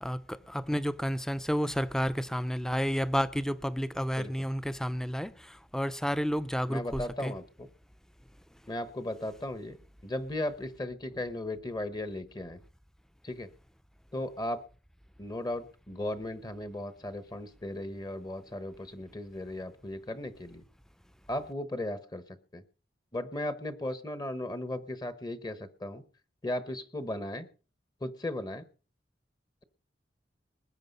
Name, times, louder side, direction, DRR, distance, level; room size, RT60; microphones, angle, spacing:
voice 1, 0.0-7.3, equal, 5° left, 0.6 m, -31 dB
voice 2, 6.7-7.7 8.7-9.8 10.0-12.6 13.2-13.5 14.1-14.6 15.2-20.6 21.3-22.6 23.1-26.0 26.4-27.5 28.0-28.7, left 1 dB, 25° left, 1.1 m, -36 dB
20.5 x 8.8 x 5.4 m
head